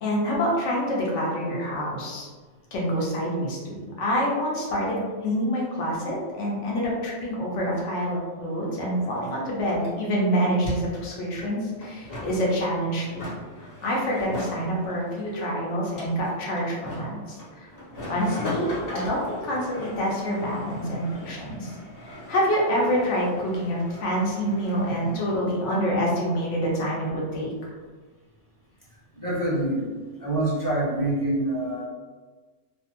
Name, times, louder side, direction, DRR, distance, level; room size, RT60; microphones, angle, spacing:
voice 1, 0.0-2.3 2.7-13.3 13.6-17.7 18.1-21.8 22.0-27.7, equal, 85° left, -4 dB, 1.2 m, -27 dB
sound 1, 8.5-8.6 8.8-25.4, left 1 dB, 55° left, 1.2 m, -40 dB
voice 2, 29.1-29.8 30.1-31.9, right 1 dB, 20° left, -7 dB, 0.6 m, -26 dB
2.8 x 2.2 x 2.9 m, 1.4 s
omnidirectional pair, 1.2 m